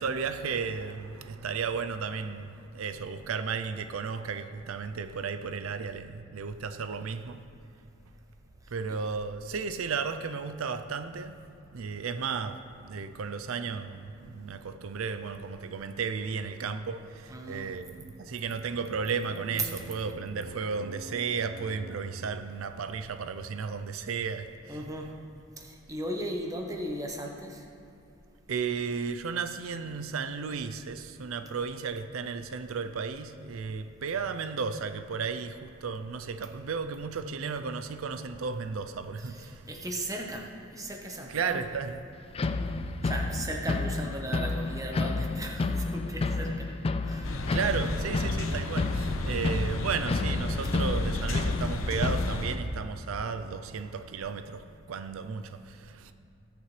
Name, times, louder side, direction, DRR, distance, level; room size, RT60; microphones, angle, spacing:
voice 1, 0.0-7.4 8.7-25.1 28.5-39.7 41.3-42.0 42.5-43.5 47.5-56.1, right 5 dB, 90° right, 0.5 m, -34 dB
voice 2, 17.3-17.7 24.7-25.1 25.6-27.7 39.2-41.6 43.0-46.7 47.0-47.5, right 1 dB, 15° right, 1.1 m, -37 dB
sound 1, 42.3-52.4, left 3 dB, 30° left, 0.3 m, -31 dB
sound 2, 47.2-52.6, left 1 dB, 75° left, 0.9 m, -33 dB
19.5 x 6.9 x 3.2 m
head